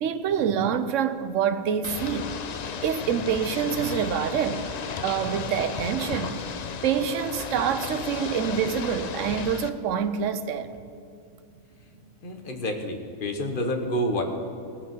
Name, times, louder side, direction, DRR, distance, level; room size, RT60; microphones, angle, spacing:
voice 1, 0.0-2.3 2.8-4.7 5.0-6.4 6.8-10.7, right 7 dB, 70° right, 1.0 m, -26 dB
Ocean / Boat Water vehicle, 1.8-9.7, left 6 dB, 60° left, 0.4 m, -34 dB
voice 2, 12.2-14.2, equal, 40° left, 1.3 m, -28 dB
17.5 x 6.6 x 7.4 m
omnidirectional pair, 1.4 m